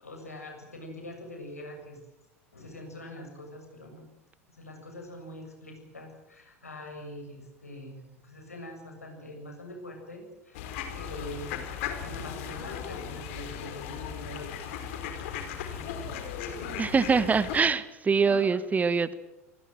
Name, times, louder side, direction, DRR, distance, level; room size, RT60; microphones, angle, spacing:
voice 1, 0.0-2.0 2.5-4.1 4.5-10.6 10.9-11.6 12.0-14.6 15.7-16.8 18.3-18.6, left 1 dB, 85° left, 3 dB, 7.5 m, -44 dB
sound 1, 10.5-17.6, left 8 dB, 60° left, 4.5 m, -37 dB
voice 2, 16.8-19.1, right 5 dB, 20° right, 16 dB, 1.4 m, -24 dB
28.5 x 21.0 x 7.7 m, 0.94 s
figure-of-eight pair, 80°, 8 cm